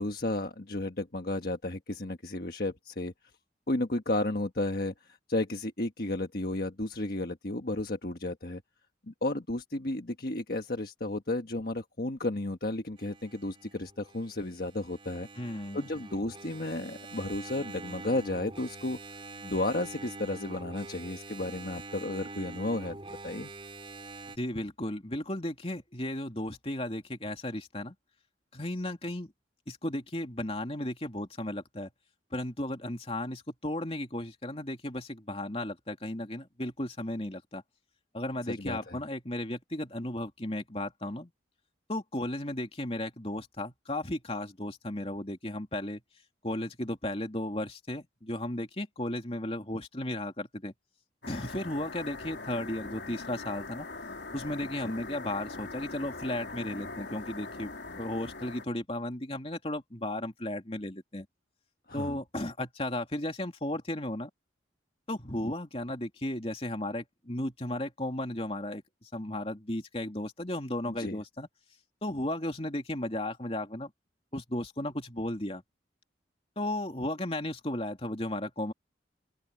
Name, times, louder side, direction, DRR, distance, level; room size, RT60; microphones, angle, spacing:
voice 1, 0.0-3.1 3.7-4.9 5.3-8.6 9.1-15.3 15.7-23.0 23.2-23.5 38.5-39.0 54.8-54.9 61.9-62.2 70.9-71.2, left 2 dB, 55° left, 1.4 m, -33 dB
Engine, 13.0-24.4, right 2 dB, 30° right, 4.4 m, -45 dB
voice 2, 15.4-15.9 24.4-27.9 28.5-29.3 29.7-31.9 32.3-37.6 38.1-41.3 41.9-46.0 46.4-50.7 51.3-53.9 54.3-61.2 61.9-64.3 65.1-71.5 72.0-73.9 74.3-75.6 76.6-78.7, left 1 dB, 30° left, 3.1 m, -35 dB
sound 1, 51.2-58.7, left 3 dB, 75° left, 3.0 m, -42 dB
head